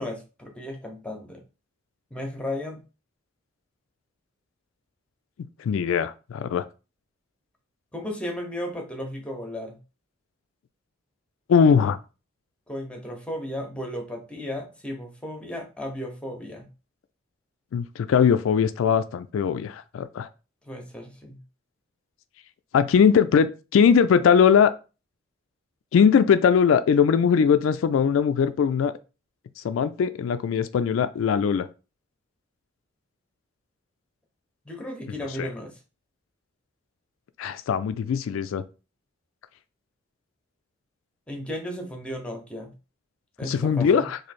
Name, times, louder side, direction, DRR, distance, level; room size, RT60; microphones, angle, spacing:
voice 1, 0.0-1.4 2.1-2.8 7.9-9.8 12.7-16.7 20.6-21.4 34.6-35.7 41.3-42.7 43.4-44.1, left 1 dB, 5° left, 2 dB, 0.8 m, -34 dB
voice 2, 5.6-6.6 11.5-12.0 17.7-20.3 22.7-24.7 25.9-28.9 29.6-31.7 35.4-35.5 37.4-38.6 43.4-44.2, left 7 dB, 80° left, 12 dB, 0.3 m, -20 dB
3.1 x 2.6 x 4.1 m, 0.32 s
head